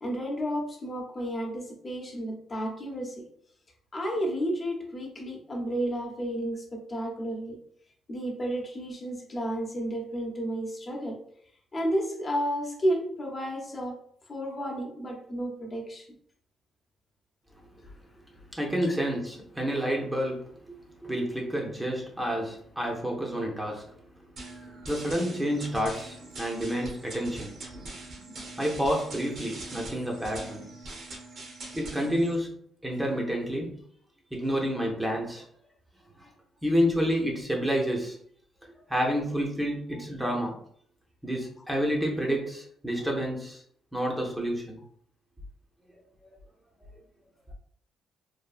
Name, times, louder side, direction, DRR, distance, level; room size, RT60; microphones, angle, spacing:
voice 1, 0.0-3.2 3.9-7.6 8.1-11.2 11.7-14.0 14.3-16.1 18.8-18.9, equal, 35° left, -1 dB, 0.8 m, -32 dB
voice 2, 18.5-24.0 24.8-30.7 31.7-33.8 34.3-35.4 36.2-36.3 36.6-38.2 38.6-40.6 41.2-43.6 43.9-44.8 46.2-46.3, equal, 10° right, -1 dB, 0.7 m, -29 dB
sound 1, 24.4-32.4, right 2 dB, 65° right, 1.0 m, -43 dB
3.3 x 2.2 x 2.4 m, 0.63 s
cardioid pair, 90°, 0 cm